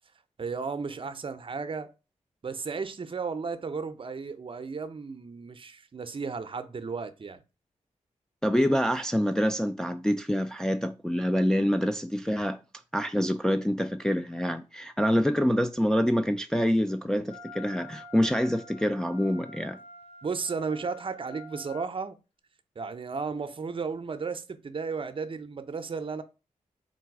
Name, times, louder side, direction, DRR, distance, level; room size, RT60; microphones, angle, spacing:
voice 1, 0.4-1.9 2.4-7.4 20.2-22.2 22.8-26.2, right 5 dB, 40° right, 0.6 m, -34 dB
voice 2, 8.4-12.6 12.9-19.8, equal, 5° left, 0.3 m, -26 dB
Wind instrument woodwind instrument, 17.3-21.9, left 1 dB, 50° left, 1.5 m, -47 dB
3.9 x 2.2 x 4.6 m
cardioid pair, 55°, 13 cm